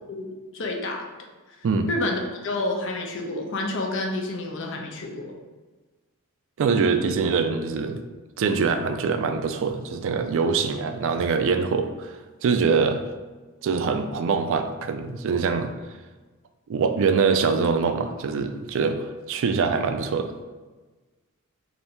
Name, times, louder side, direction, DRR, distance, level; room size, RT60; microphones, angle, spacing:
voice 1, 0.1-1.1 1.5-1.6 1.9-5.3, left 2 dB, 60° left, 1 dB, 0.6 m, -29 dB
voice 2, 6.6-8.0 8.4-13.0 13.6-15.7 16.7-20.3, right 5 dB, 60° right, 8 dB, 0.3 m, -24 dB
3.4 x 2.7 x 4.2 m, 1.3 s
head